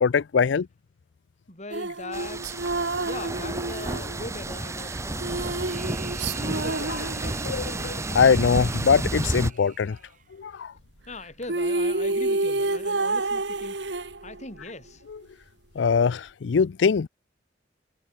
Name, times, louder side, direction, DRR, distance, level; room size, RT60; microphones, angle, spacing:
voice 1, 0.0-0.7 7.5-10.0 10.4-10.7 15.8-17.1, left 6 dB, 80° left, 0.5 m, -22 dB
voice 2, 1.5-5.7 6.4-7.4 11.1-13.8 14.2-15.0, left 2 dB, 40° left, 7.6 m, -40 dB
sound 1, 1.7-7.9 11.1-11.2 11.4-14.6, right 2 dB, 70° right, 2.2 m, -29 dB
sound 2, 2.1-9.5, right 2 dB, 15° right, 0.7 m, -31 dB
sound 3, 5.4-10.5, right 7 dB, 45° right, 5.2 m, -47 dB
head